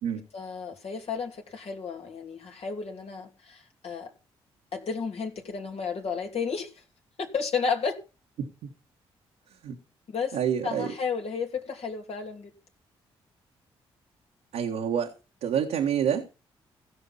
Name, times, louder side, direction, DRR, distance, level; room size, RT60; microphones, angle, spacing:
voice 1, 0.3-4.1 4.7-6.7 7.2-8.0 10.1-10.4 10.6-12.5, left 5 dB, 60° left, 2.7 m, -32 dB
voice 2, 8.4-8.7 9.6-9.8 10.3-10.9 14.5-15.1 15.4-16.3, right 8 dB, 80° right, 1.5 m, -28 dB
16.0 x 6.0 x 5.5 m
hypercardioid pair, 45°, 12 cm